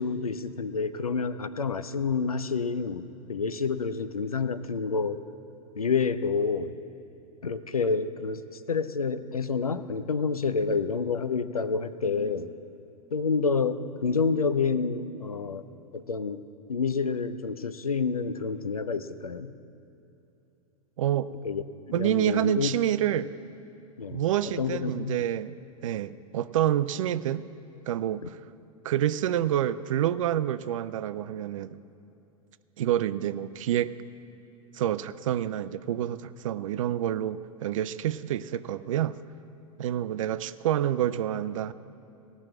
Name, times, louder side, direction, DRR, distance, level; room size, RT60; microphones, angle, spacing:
voice 1, 0.0-5.2 5.7-6.7 7.4-12.6 13.1-15.6 15.9-16.4 16.7-19.5 21.4-21.6 21.9-22.7 24.0-24.2 24.6-25.2, left 5 dB, 90° left, 12 dB, 0.5 m, -28 dB
voice 2, 21.0-21.3 21.9-23.3 24.1-25.5 25.8-27.4 27.9-28.4 28.8-31.8 32.8-33.9 34.7-39.2 39.8-41.7, right 11 dB, 65° right, 15 dB, 0.4 m, -28 dB
16.5 x 6.2 x 7.6 m, 2.8 s
figure-of-eight pair, 90°, 18 cm